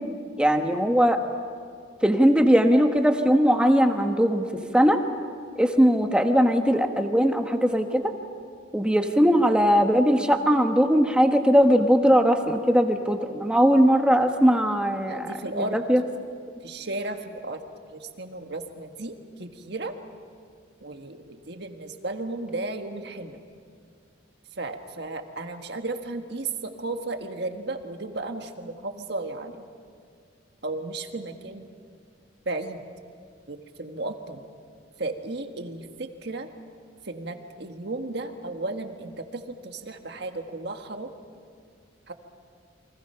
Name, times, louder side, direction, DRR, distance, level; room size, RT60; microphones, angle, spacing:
voice 1, 0.4-1.2 2.0-4.4 4.7-5.0 5.6-8.1 8.7-16.0, equal, 5° right, 4 dB, 1.2 m, -20 dB
voice 2, 15.1-15.8 16.6-17.6 17.9-19.9 20.8-23.3 24.6-29.6 30.6-31.7 32.4-32.8 33.5-34.4 35.0-36.5 37.0-41.1 42.1-42.2, right 2 dB, 60° right, 5 dB, 1.6 m, -34 dB
29.5 x 24.0 x 5.8 m, 2.2 s
head